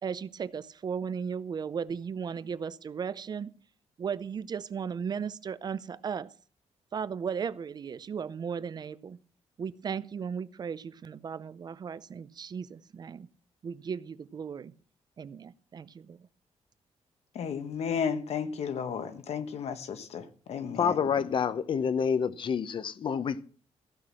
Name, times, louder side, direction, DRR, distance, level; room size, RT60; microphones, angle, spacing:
voice 1, 0.0-3.5 4.0-6.3 6.9-9.2 9.6-13.3 13.6-14.7 15.2-16.3, right 6 dB, 35° right, 0.5 m, -36 dB
voice 2, 17.3-21.0, left 7 dB, 65° left, 1.3 m, -33 dB
voice 3, 20.8-23.4, left 7 dB, 45° left, 0.8 m, -28 dB
15.0 x 6.0 x 7.4 m
wide cardioid pair, 155°, 11 cm